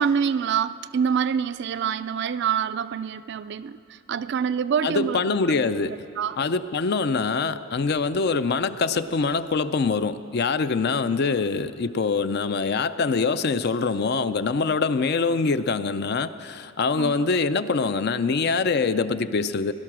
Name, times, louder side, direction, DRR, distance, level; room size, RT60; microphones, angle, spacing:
voice 1, 0.0-5.4 6.2-6.4 17.0-17.2, right 7 dB, 55° right, 14 dB, 0.3 m, -26 dB
voice 2, 4.8-6.0 6.4-19.7, left 4 dB, 50° left, 13 dB, 0.4 m, -24 dB
18.0 x 12.0 x 6.1 m, 2.5 s
head